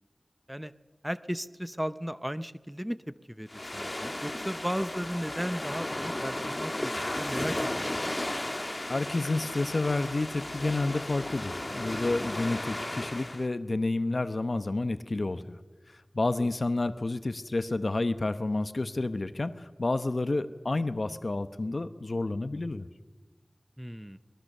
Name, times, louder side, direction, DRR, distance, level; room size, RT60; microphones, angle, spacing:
voice 1, 1.0-8.2 16.3-16.5 23.8-24.2, equal, 10° right, 13 dB, 0.7 m, -36 dB
sound 1, 3.5-13.5, left 1 dB, 35° left, 1.6 m, -34 dB
voice 2, 8.9-15.6 16.1-22.9, left 2 dB, 70° left, 12 dB, 0.9 m, -30 dB
22.5 x 21.0 x 6.7 m, 1.3 s
wide cardioid pair, 50°, 0 cm